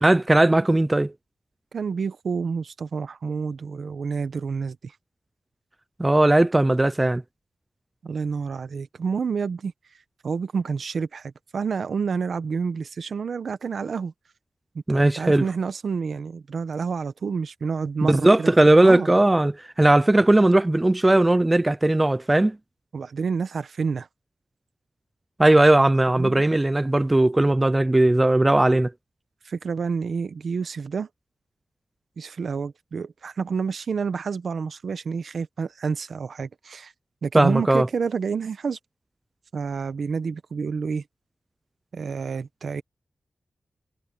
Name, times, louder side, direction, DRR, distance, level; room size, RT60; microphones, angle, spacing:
voice 1, 0.0-1.1 6.0-7.2 14.9-15.4 18.0-22.6 25.4-28.9 37.3-37.9, right 1 dB, 15° right, 0.4 m, -18 dB
voice 2, 1.7-4.9 8.0-9.7 10.2-14.1 14.9-19.1 22.9-24.1 26.1-26.4 29.4-31.1 32.2-36.9 37.2-38.8 39.5-41.0 41.9-42.8, right 5 dB, 65° right, 1.0 m, -29 dB
wide cardioid pair, 160°, 0 cm